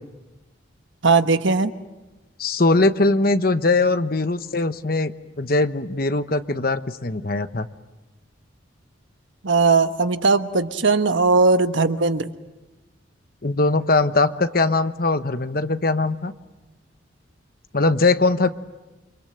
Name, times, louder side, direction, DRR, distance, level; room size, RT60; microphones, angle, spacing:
voice 1, 1.0-1.7 9.4-12.3, right 4 dB, 75° right, 9 dB, 1.2 m, -18 dB
voice 2, 2.4-5.1 5.4-7.7 13.4-16.3 17.7-18.5, left 3 dB, 50° left, 10 dB, 1.1 m, -21 dB
29.5 x 25.5 x 7.8 m, 1.1 s
head